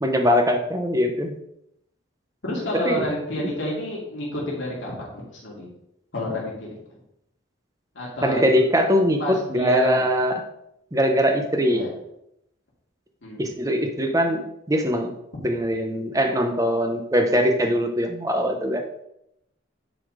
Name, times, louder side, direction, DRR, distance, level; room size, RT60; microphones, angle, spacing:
voice 1, 0.0-1.3 2.8-3.0 8.2-10.4 10.9-11.8 13.4-15.1 15.4-18.8, equal, 15° right, 5 dB, 0.9 m, -22 dB
voice 2, 2.4-5.7 6.1-6.7 7.9-8.5 9.2-10.0 11.6-11.9 13.2-13.5, left 1 dB, 70° left, -5 dB, 2.6 m, -29 dB
9.7 x 4.2 x 5.0 m, 0.79 s
head